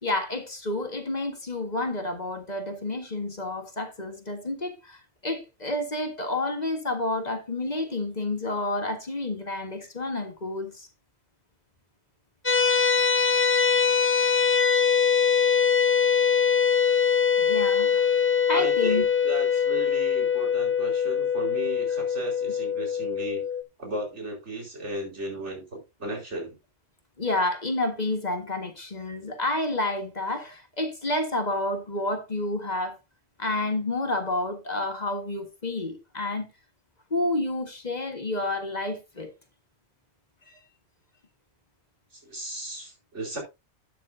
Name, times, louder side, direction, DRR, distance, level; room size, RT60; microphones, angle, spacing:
voice 1, 0.0-10.9 13.9-14.0 17.4-18.1 18.5-19.0 27.2-33.0 33.4-36.5 37.1-39.3 40.5-40.6, left 2 dB, 40° left, 1.7 m, -29 dB
sound 1, 12.5-23.6, left 6 dB, 15° left, 0.6 m, -23 dB
voice 2, 18.5-23.4 23.8-26.5 42.1-43.4, right 1 dB, 90° right, 4.9 m, -35 dB
12.0 x 9.4 x 2.7 m
omnidirectional pair, 1.2 m